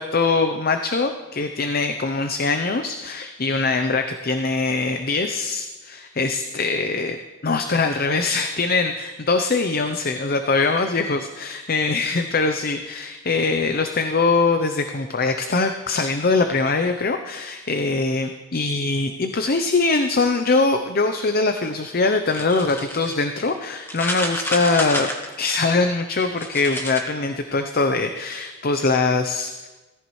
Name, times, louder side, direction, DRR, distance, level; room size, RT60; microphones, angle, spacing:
voice 1, 0.0-7.2 7.4-25.1 25.4-29.7, left 3 dB, 45° left, 7 dB, 0.6 m, -22 dB
sound 1, 22.3-23.2 23.8-25.5 26.2-27.0, left 1 dB, 10° left, 1.2 m, -29 dB
17.5 x 14.5 x 3.2 m, 1.2 s
head